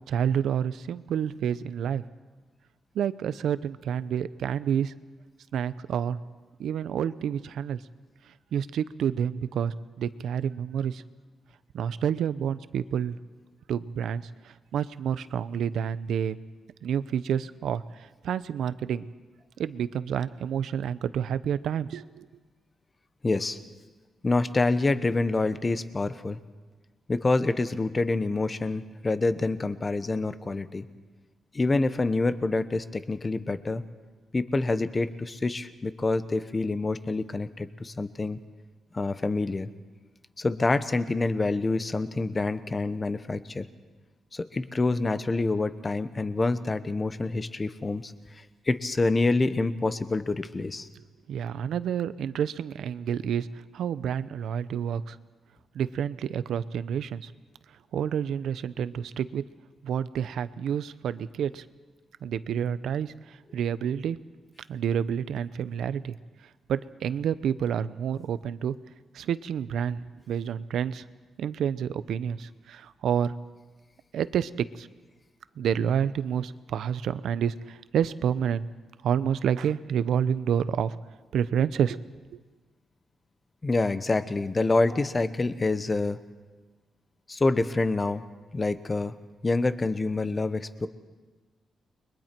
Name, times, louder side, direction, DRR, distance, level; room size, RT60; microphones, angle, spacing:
voice 1, 0.1-2.0 2.9-4.9 5.5-6.2 6.6-7.8 8.5-11.0 11.7-13.2 13.7-14.2 14.7-16.4 16.8-17.8 18.2-19.1 19.6-22.3 51.3-53.5 53.7-55.2 55.7-57.3 57.9-59.4 59.8-61.6 62.2-63.1 63.5-64.2 64.7-66.2 66.7-68.7 69.1-70.0 70.3-71.0 71.4-73.3 74.1-74.9 75.6-78.7 79.0-81.0 81.3-82.0 82.3-82.4, right 8 dB, 75° right, 15 dB, 0.7 m, -29 dB
voice 2, 23.2-23.6 24.2-26.4 27.1-30.8 31.5-33.8 34.3-38.4 38.9-39.7 40.4-43.7 44.3-48.1 48.7-50.9 83.6-86.2 87.3-88.2 88.5-89.1 89.4-90.9, left 3 dB, 20° left, 12 dB, 0.8 m, -27 dB
30.0 x 22.5 x 4.5 m, 1.3 s
wide cardioid pair, 155°, 0 cm